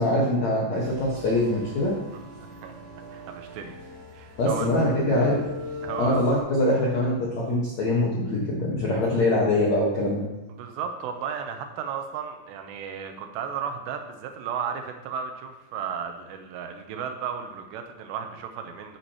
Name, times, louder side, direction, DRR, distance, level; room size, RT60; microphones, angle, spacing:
voice 1, 0.0-2.0 4.4-5.4 6.0-10.3, left 1 dB, 65° left, -4 dB, 1.7 m, -23 dB
sound 1, 0.7-6.4, equal, 50° right, 5.0 m, -39 dB
voice 2, 3.1-3.7 4.1-4.7 5.8-6.2 10.5-19.0, right 7 dB, 80° right, 5 dB, 2.8 m, -34 dB
12.5 x 8.7 x 2.9 m, 1.1 s
omnidirectional pair, 5.2 m